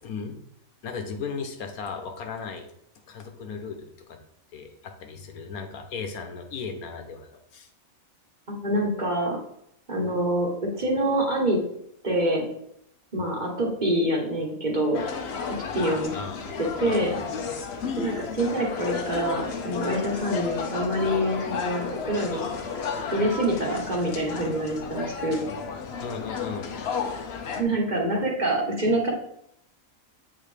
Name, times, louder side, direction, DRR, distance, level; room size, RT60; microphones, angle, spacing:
voice 1, 0.0-0.4 0.8-2.7 3.1-4.2 4.5-7.7 13.2-13.3 16.0-16.6 16.8-17.2 26.0-26.7, left 5 dB, 90° left, 5 dB, 1.4 m, -36 dB
voice 2, 8.5-9.4 9.9-11.6 12.0-12.4 13.1-15.0 15.5-16.1 16.6-17.1 18.0-22.5 23.1-25.4 27.6-29.1, right 1 dB, 35° right, -1 dB, 1.2 m, -26 dB
sound 1, 14.9-27.6, left 5 dB, 60° left, 0.8 m, -33 dB
7.7 x 3.9 x 3.3 m, 0.74 s
omnidirectional pair, 1.5 m